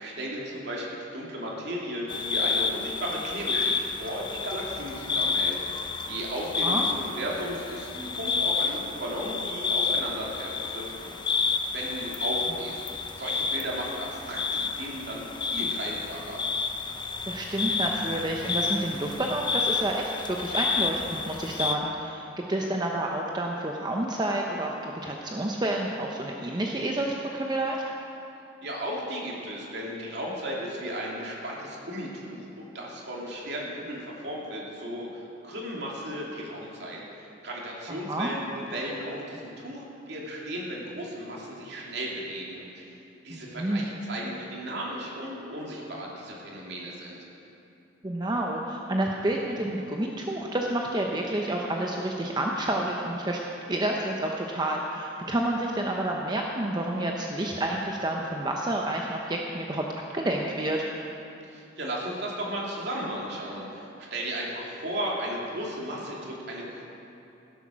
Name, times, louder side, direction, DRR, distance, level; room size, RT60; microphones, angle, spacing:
voice 1, 0.0-12.8 13.1-16.4 28.6-47.2 61.4-66.8, equal, 60° right, -4 dB, 2.6 m, -35 dB
sound 1, 2.1-21.8, left 5 dB, 25° left, 0.5 m, -30 dB
voice 2, 17.3-27.8 38.1-38.3 43.3-43.8 48.0-53.4 53.7-59.8 60.1-60.8, right 1 dB, 25° right, 0 dB, 0.7 m, -29 dB
16.0 x 8.2 x 6.2 m, 2.8 s
head